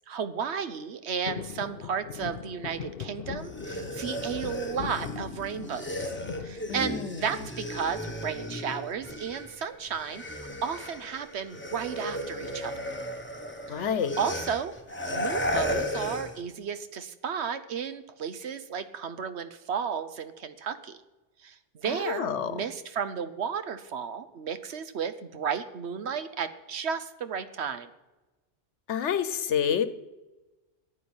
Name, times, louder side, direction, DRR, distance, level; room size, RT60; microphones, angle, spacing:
voice 1, 0.1-5.8 6.4-12.7 13.7-13.9 14.2-14.7 15.1-21.0 21.4-27.9, right 7 dB, 70° right, 11 dB, 1.1 m, -33 dB
sound 1, 1.2-7.4 7.9-8.5 9.7-10.2 10.4-10.5 10.8-11.1 11.9-12.9 13.3-13.4, left 8 dB, 60° left, 0.7 m, -41 dB
sound 2, 3.4-9.6 9.9-16.4, left 1 dB, 10° left, 1.1 m, -35 dB
voice 2, 6.7-7.3 13.7-14.2 21.9-22.6 28.9-29.9, left 8 dB, 90° left, 13 dB, 1.2 m, -28 dB
10.0 x 9.5 x 8.8 m, 1.1 s
omnidirectional pair, 1.2 m